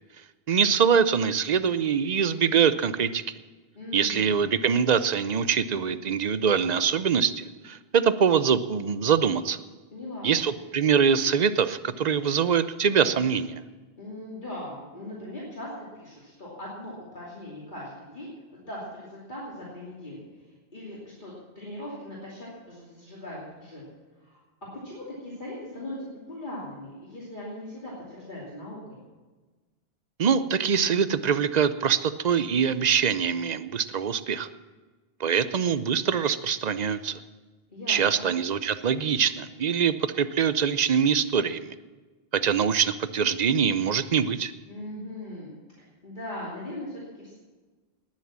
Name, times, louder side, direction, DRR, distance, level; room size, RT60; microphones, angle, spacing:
voice 1, 0.5-3.2 3.9-9.6 10.2-13.6 30.2-34.5 35.2-37.2 37.9-41.7 42.3-44.5, right 7 dB, 45° right, 13 dB, 0.6 m, -24 dB
voice 2, 3.7-4.5 9.9-10.4 14.0-18.3 18.6-23.8 24.2-24.4 24.8-29.0 37.7-38.3 44.7-47.3, left 1 dB, 45° left, -6 dB, 3.0 m, -39 dB
19.0 x 7.5 x 7.3 m, 1.3 s
omnidirectional pair, 1.1 m